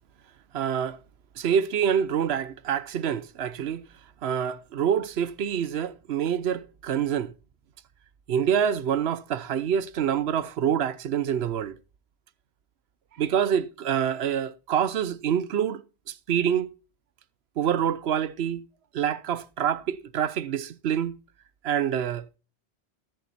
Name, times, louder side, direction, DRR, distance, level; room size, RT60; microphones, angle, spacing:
voice 1, 0.5-1.0 1.4-3.8 4.2-7.3 8.3-11.8 13.2-15.8 16.1-16.7 17.6-18.6 18.9-21.2 21.6-22.3, right 8 dB, 80° right, 1.0 m, -26 dB
14.0 x 7.5 x 4.2 m
omnidirectional pair, 1.1 m